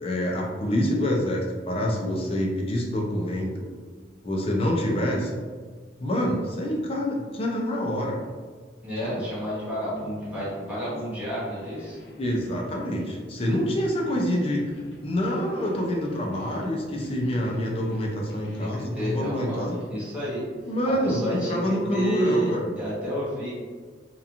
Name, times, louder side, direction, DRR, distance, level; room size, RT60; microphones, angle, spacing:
voice 1, 0.0-3.7 4.2-5.3 6.0-8.2 9.0-9.2 12.2-14.7 15.0-19.8 20.6-22.7, equal, 30° left, -1 dB, 0.4 m, -26 dB
voice 2, 8.8-12.0 18.6-20.4 20.9-23.6, equal, 10° right, -10 dB, 0.8 m, -30 dB
sound 1, 9.9-18.8, left 1 dB, 85° left, 0.6 m, -45 dB
2.8 x 2.4 x 2.4 m, 1.5 s
head